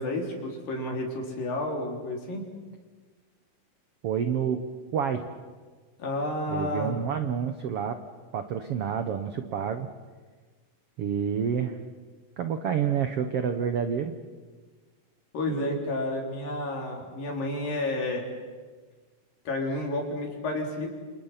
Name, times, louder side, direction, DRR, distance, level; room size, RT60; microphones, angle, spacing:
voice 1, 0.0-2.4 6.0-7.0 15.3-18.3 19.5-20.9, left 1 dB, 70° left, 1 dB, 5.6 m, -31 dB
voice 2, 4.0-4.6 4.9-5.2 6.5-8.0 8.3-9.9 11.0-11.8 12.4-14.1 15.5-15.8, right 8 dB, 70° right, 8 dB, 1.4 m, -28 dB
29.0 x 27.5 x 5.8 m, 1.4 s
omnidirectional pair, 4.2 m